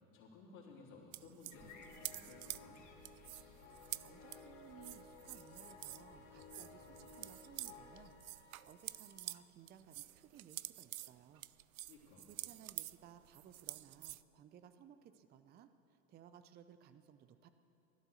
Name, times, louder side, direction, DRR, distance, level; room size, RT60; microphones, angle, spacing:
voice 1, 0.1-2.8 11.9-12.3, left 3 dB, 60° left, -9 dB, 3.5 m, -58 dB
sound 1, 1.1-6.1 6.4-9.4 9.7-14.2, right 15 dB, 75° right, 0.5 m, -48 dB
sound 2, 1.5-8.1, left 4 dB, 45° left, 2.5 m, -57 dB
voice 2, 4.0-11.4 12.3-17.5, right 9 dB, 25° right, 10 dB, 0.6 m, -60 dB
Wind instrument woodwind instrument, 5.1-9.5, left 6 dB, 25° left, 0.8 m, -67 dB
17.0 x 11.5 x 6.5 m, 3.0 s
hypercardioid pair, 90°, 43 cm